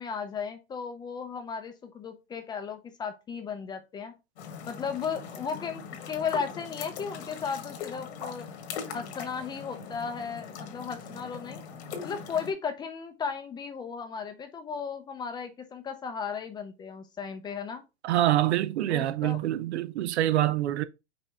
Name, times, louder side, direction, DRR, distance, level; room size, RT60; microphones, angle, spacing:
voice 1, 0.0-4.1 4.7-8.5 8.9-11.6 12.0-17.8 18.9-19.4, left 6 dB, 15° left, 0.5 m, -35 dB
sound 1, 4.4-12.5, left 6 dB, 75° left, 1.4 m, -41 dB
voice 2, 18.0-20.8, right 13 dB, 80° right, 0.6 m, -25 dB
5.2 x 2.8 x 3.4 m
hypercardioid pair, 135°, 33 cm